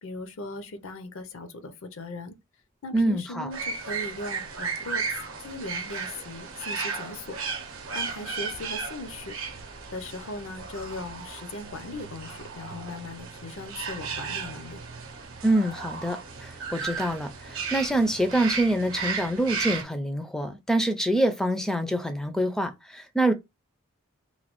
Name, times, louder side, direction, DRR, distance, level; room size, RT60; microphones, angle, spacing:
voice 1, 0.0-2.4 2.8-7.4 7.9-9.4 9.9-14.8, left 2 dB, 65° left, 0.5 m, -38 dB
voice 2, 2.9-3.5 15.4-23.3, right 1 dB, ahead, 0.3 m, -26 dB
sound 1, 3.5-19.8, right 5 dB, 65° right, 0.7 m, -35 dB
3.1 x 2.2 x 2.9 m
head